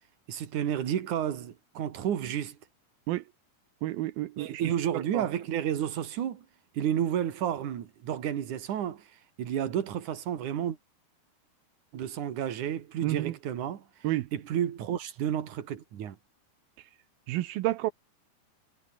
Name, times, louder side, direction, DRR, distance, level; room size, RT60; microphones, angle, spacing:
voice 1, 0.3-2.6 4.4-6.4 6.7-9.0 9.4-10.8 11.9-13.8 14.3-16.2, right 10 dB, 60° right, 3.3 m, -31 dB
voice 2, 3.8-5.3 13.0-13.4 14.0-14.3 16.8-16.9 17.3-17.9, right 16 dB, 80° right, 2.7 m, -31 dB
omnidirectional pair, 4.3 m